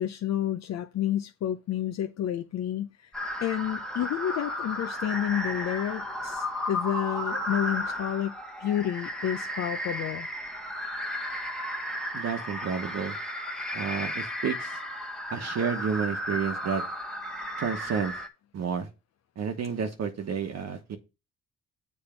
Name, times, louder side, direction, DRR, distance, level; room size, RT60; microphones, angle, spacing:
voice 1, 0.0-3.1 3.4-8.3 8.6-10.3, left 11 dB, 60° left, 0.7 m, -30 dB
sound 1, 3.1-18.3, equal, ahead, 1.3 m, -34 dB
voice 2, 12.1-13.2 13.7-14.8 15.3-16.8 17.6-18.2 18.5-18.9 19.4-21.0, right 6 dB, 60° right, 1.1 m, -31 dB
7.1 x 4.4 x 5.7 m
cardioid pair, 90°, 30 cm